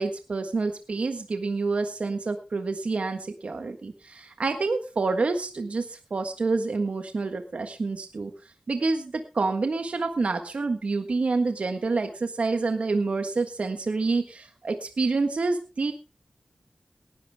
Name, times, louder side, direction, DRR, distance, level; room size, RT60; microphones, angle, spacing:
voice 1, 0.0-8.3 8.7-15.9, right 3 dB, 75° right, 6 dB, 1.5 m, -28 dB
19.0 x 11.0 x 3.5 m, 0.33 s
wide cardioid pair, 60°, 2 cm